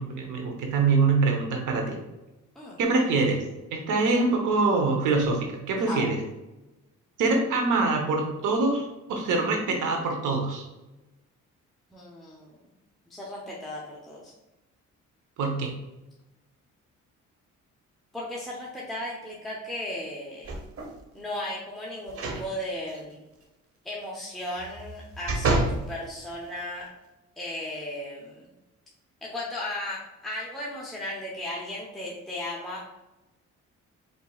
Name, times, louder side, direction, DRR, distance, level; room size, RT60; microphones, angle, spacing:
voice 1, 0.0-2.0 2.8-3.4 3.7-6.2 7.2-10.6 15.4-15.7, right 3 dB, 85° right, 2 dB, 1.0 m, -24 dB
voice 2, 11.9-12.5 13.1-14.3 18.1-20.5 21.1-23.3 23.8-26.9 27.4-28.4 29.2-32.9, left 1 dB, ahead, -5 dB, 0.8 m, -36 dB
sound 1, 20.4-21.0 22.1-22.5 22.9-23.0 24.6-25.8 26.4-26.5, right 2 dB, 50° right, 1.0 m, -28 dB
4.5 x 4.1 x 2.4 m, 1.0 s
cardioid pair, 90°, 30 cm